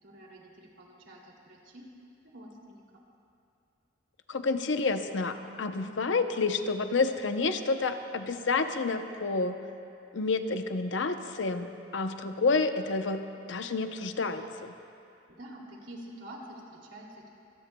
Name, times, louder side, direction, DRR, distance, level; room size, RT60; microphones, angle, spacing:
voice 1, 0.0-1.9 2.3-2.8 15.3-17.3, right 1 dB, 75° right, -2 dB, 2.7 m, -47 dB
voice 2, 4.3-9.6 10.1-11.7 11.9-14.7, left 3 dB, 75° left, 7 dB, 0.8 m, -29 dB
25.5 x 17.5 x 2.3 m, 2.8 s
head